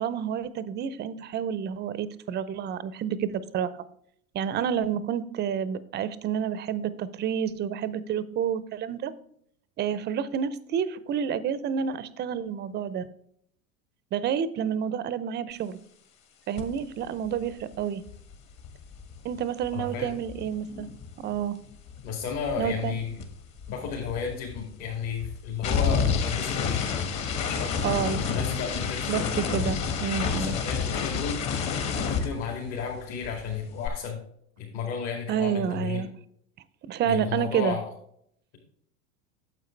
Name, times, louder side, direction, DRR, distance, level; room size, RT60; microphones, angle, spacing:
voice 1, 0.0-3.7 4.3-9.1 9.8-13.1 14.1-15.8 16.5-18.0 19.2-20.9 21.2-21.6 22.6-22.9 27.8-28.2 29.1-30.6 35.3-36.1 36.9-37.8, right 8 dB, 25° right, 16 dB, 0.5 m, -29 dB
sound 1, 16.6-16.8 17.0-21.4 21.7-33.0 33.2-33.9, left 6 dB, 40° left, 1.6 m, -30 dB
voice 2, 19.7-20.1 22.0-23.2 23.7-26.9 27.5-27.8 28.2-29.7 30.3-31.4 31.9-34.2 34.6-36.0 37.0-37.9, left 6 dB, 55° left, -2 dB, 2.5 m, -33 dB
9.2 x 7.5 x 3.3 m, 0.67 s
hypercardioid pair, 95°, 45 cm